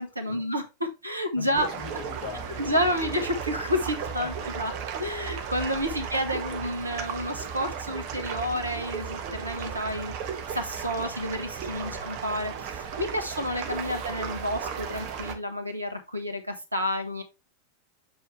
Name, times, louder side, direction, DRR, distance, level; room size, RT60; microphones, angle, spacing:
voice 1, 0.0-1.7 2.6-4.7 5.0-17.2, equal, 85° right, 1.4 m, -30 dB
voice 2, 1.3-2.9 4.0-4.8 5.8-6.1 11.8-12.1 13.4-13.5, left 6 dB, 45° left, 1.9 m, -42 dB
sound 1, 1.5-15.3, right 7 dB, 45° right, 1.4 m, -35 dB
7.9 x 5.0 x 3.3 m
figure-of-eight pair, 90°, 0 cm